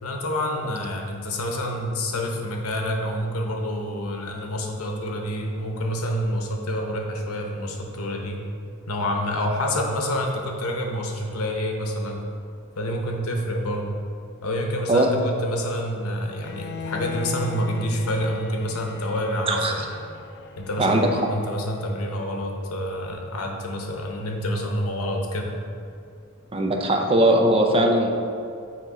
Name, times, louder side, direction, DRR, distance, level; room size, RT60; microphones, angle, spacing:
voice 1, 0.0-8.4 8.9-12.2 12.8-14.0 14.4-19.9 20.6-25.6, equal, 85° left, 1 dB, 0.9 m, -28 dB
Bowed string instrument, 16.4-22.5, left 5 dB, 50° left, 0.4 m, -38 dB
voice 2, 20.8-21.1 26.5-28.1, right 1 dB, 25° right, 2 dB, 0.5 m, -19 dB
7.9 x 2.9 x 4.8 m, 2.4 s
head